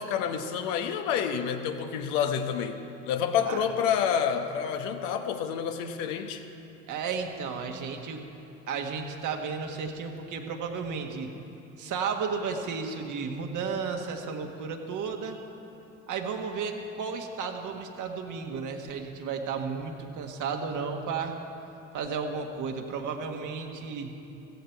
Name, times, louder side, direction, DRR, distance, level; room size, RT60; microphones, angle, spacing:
voice 1, 0.0-6.4, left 8 dB, 70° left, 6 dB, 1.2 m, -28 dB
voice 2, 6.9-8.2 8.7-11.3 11.8-15.4 16.1-21.4 21.9-24.1, right 5 dB, 50° right, 3 dB, 1.7 m, -33 dB
15.5 x 15.5 x 4.7 m, 2.9 s
hypercardioid pair, 70°, 38 cm